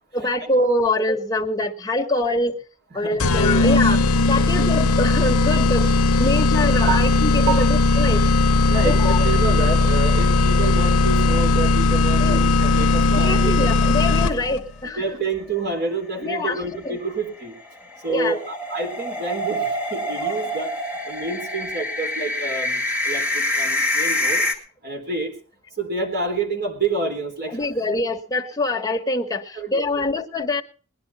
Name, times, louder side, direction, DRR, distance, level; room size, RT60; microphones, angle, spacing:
voice 1, 0.1-2.6 2.9-8.3 8.8-9.3 12.2-12.5 13.1-15.0 16.2-17.0 18.1-18.4 24.3-24.4 27.5-30.6, left 2 dB, 15° left, 2 dB, 1.3 m, -24 dB
sound 1, 3.2-14.6, left 3 dB, 80° left, 0.8 m, -18 dB
voice 2, 8.7-13.7 14.2-14.3 15.0-17.5 18.0-18.4 18.7-20.7 21.1-24.4 24.8-25.3 25.8-27.6 29.5-30.0, right 3 dB, 50° right, 4 dB, 3.7 m, -28 dB
sound 2, 9.6-10.5 10.9-11.0 11.3-11.4 15.5-24.5, left 1 dB, 5° right, 2.2 m, -26 dB
20.0 x 10.5 x 4.2 m, 0.38 s
head